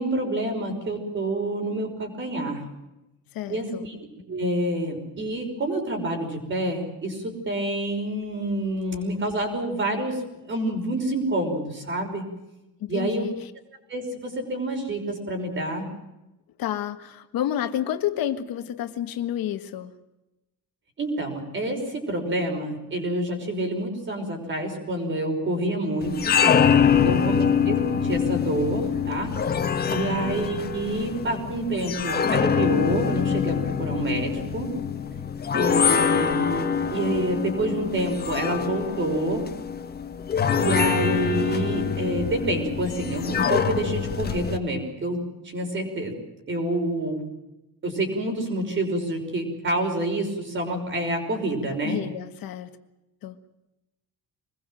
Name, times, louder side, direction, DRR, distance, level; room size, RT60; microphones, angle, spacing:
voice 1, 0.0-2.6 3.5-3.9 4.3-10.2 10.5-12.3 12.9-13.3 13.9-15.9 21.0-26.4 26.9-29.4 29.9-34.7 35.5-39.4 40.6-46.1 46.5-47.2 47.8-52.0, right 1 dB, 30° right, 4 dB, 5.7 m, -28 dB
voice 2, 3.3-3.8 12.8-13.5 16.6-19.9 26.8-27.4 29.8-30.3 51.8-52.7 53.2-53.4, left 11 dB, 70° left, 8 dB, 1.7 m, -30 dB
sound 1, 26.0-44.6, left 7 dB, 25° left, 1.3 m, -24 dB
25.0 x 21.0 x 7.8 m, 0.97 s
cardioid pair, 180°, 36 cm